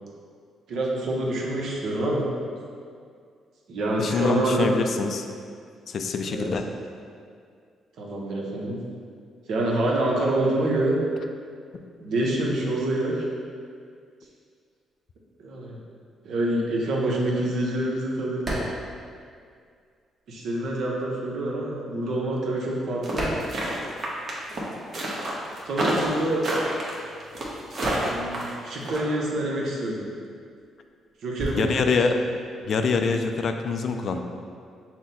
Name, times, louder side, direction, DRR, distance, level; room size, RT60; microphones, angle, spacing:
voice 1, 0.7-2.2 3.7-4.7 6.2-6.5 8.0-8.8 9.5-11.0 12.0-13.2 15.4-15.8 16.2-18.5 20.3-23.2 25.6-26.5 28.1-30.0 31.2-31.9, right 1 dB, 70° right, -2 dB, 0.8 m, -26 dB
voice 2, 4.0-5.2 5.9-6.6 31.6-32.2 32.6-34.2, left 4 dB, 55° left, 6 dB, 0.3 m, -25 dB
sound 1, 18.4-20.0 20.2-24.4 24.6-33.4, right 1 dB, 30° right, 1.2 m, -37 dB
sound 2, 23.0-29.0, right 1 dB, 50° right, 0.9 m, -28 dB
5.8 x 2.1 x 4.1 m, 2.2 s
cardioid pair, 90°, 0 cm